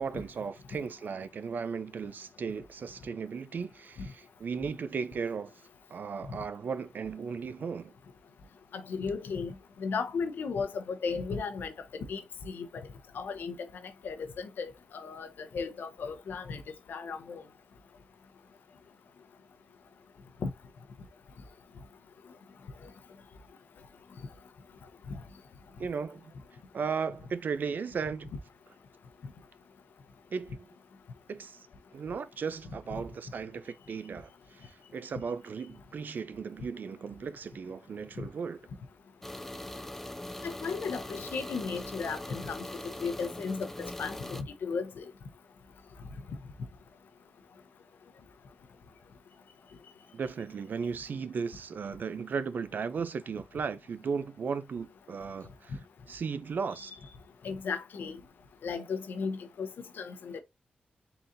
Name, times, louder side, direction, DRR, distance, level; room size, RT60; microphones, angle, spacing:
voice 1, 0.0-5.5 5.9-7.9 25.8-26.3 26.7-28.3 30.3-30.7 31.3-31.7 31.9-38.6 50.1-55.8 56.1-56.9, right 5 dB, 70° right, 0.5 m, -36 dB
voice 2, 8.7-12.9 13.1-13.7 14.0-16.6 16.9-17.4 20.4-20.5 25.1-25.2 38.2-38.3 40.4-45.1 57.4-58.2 58.6-59.7 60.0-60.4, left 5 dB, 90° left, 0.7 m, -35 dB
sound 1, 39.2-44.4, left 1 dB, 10° left, 0.5 m, -41 dB
4.0 x 3.8 x 2.6 m
cardioid pair, 65°, 3 cm